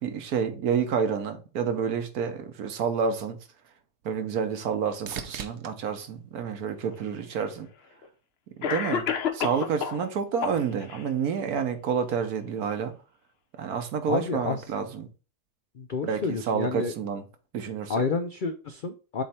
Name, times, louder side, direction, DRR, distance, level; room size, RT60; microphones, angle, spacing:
voice 1, 0.0-3.4 4.0-7.7 8.6-9.1 9.3-12.9 13.6-15.1 16.0-17.2 17.5-18.0, right 6 dB, 75° right, 1.4 m, -29 dB
sound 1, 3.3-7.5 8.1-8.7 16.5-16.6, right 8 dB, 60° right, 0.8 m, -44 dB
Cough, 6.9-7.0 8.0-8.1 8.6-10.0 10.4-11.0, left 7 dB, 50° left, 0.8 m, -29 dB
voice 2, 14.1-14.6 15.8-16.9 17.9-19.2, left 4 dB, 70° left, 0.4 m, -29 dB
7.6 x 3.3 x 4.3 m
omnidirectional pair, 1.6 m